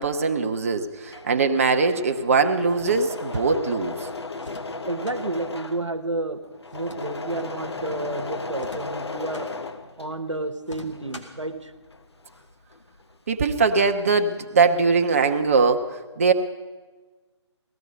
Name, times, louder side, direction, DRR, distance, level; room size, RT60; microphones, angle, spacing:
voice 1, 0.0-4.0 13.3-16.3, right 4 dB, 30° right, 6 dB, 0.8 m, -21 dB
Engine / Mechanisms, 0.9-10.5 10.8-13.2 13.4-14.1, left 3 dB, 60° left, 1.0 m, -36 dB
sound 1, 2.7-3.5 4.4-5.2 6.7-7.5 8.5-9.5 10.6-11.5, left 1 dB, 80° left, 2.4 m, -44 dB
voice 2, 4.9-6.4 6.7-9.5 10.0-11.7, right 2 dB, 85° right, 8 dB, 1.1 m, -30 dB
17.5 x 14.0 x 5.3 m, 1.4 s
figure-of-eight pair, 150°, 15 cm